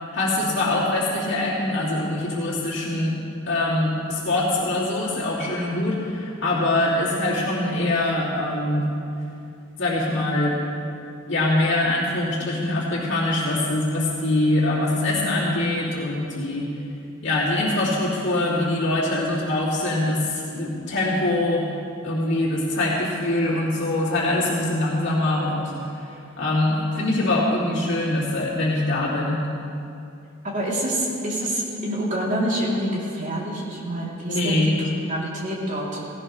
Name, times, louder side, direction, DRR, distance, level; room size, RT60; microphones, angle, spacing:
voice 1, 0.1-3.2 3.5-8.9 9.8-10.6 11.3-16.7 17.2-21.7 22.0-25.7 26.0-29.4 34.3-34.8, left 1 dB, 60° left, -6 dB, 2.9 m, -23 dB
voice 2, 30.5-34.6 34.9-36.0, right 1 dB, 40° right, -5 dB, 3.2 m, -27 dB
17.5 x 17.0 x 3.3 m, 2.6 s
head